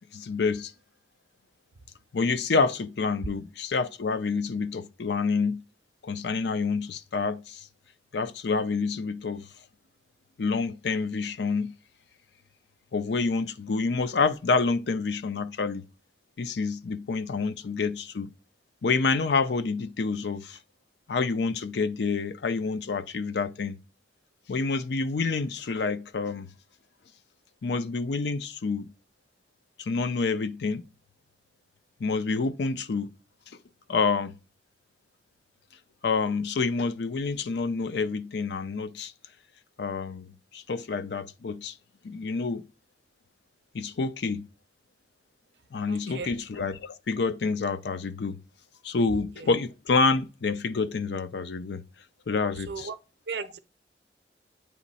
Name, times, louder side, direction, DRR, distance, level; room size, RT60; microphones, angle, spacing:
voice 1, 0.1-0.7 2.1-5.6 6.0-7.6 8.1-9.4 10.4-11.7 12.9-15.8 16.4-18.3 18.8-20.6 21.1-23.7 24.5-26.5 27.6-28.9 29.8-30.9 32.0-33.1 33.9-34.3 36.0-39.1 39.8-41.7 42.0-42.7 43.7-44.4 45.7-48.4 48.8-51.8 52.3-52.9, left 4 dB, 80° left, 0.5 m, -28 dB
voice 2, 45.9-46.3 49.4-49.5 52.7-53.0 53.3-53.6, right 5 dB, 75° right, 0.5 m, -36 dB
8.4 x 3.0 x 4.1 m
head